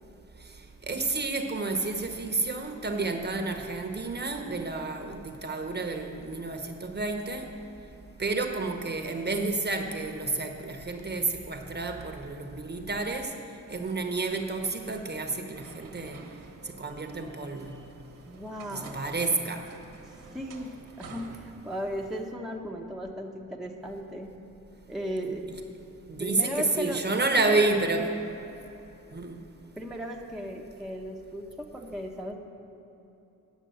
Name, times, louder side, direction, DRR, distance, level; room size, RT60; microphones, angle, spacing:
voice 1, 0.9-7.5 8.2-13.3 13.7-16.2 16.6-17.8 18.7-19.7 26.1-28.2 29.1-29.4, right 3 dB, 30° right, 1.0 m, -30 dB
sound 1, 13.9-22.1, right 3 dB, 80° right, 1.2 m, -50 dB
voice 2, 18.3-19.0 20.0-24.3 24.9-25.5 26.2-27.7 29.8-32.4, equal, ahead, 0.9 m, -36 dB
9.2 x 6.0 x 7.7 m
cardioid pair, 70°, 32 cm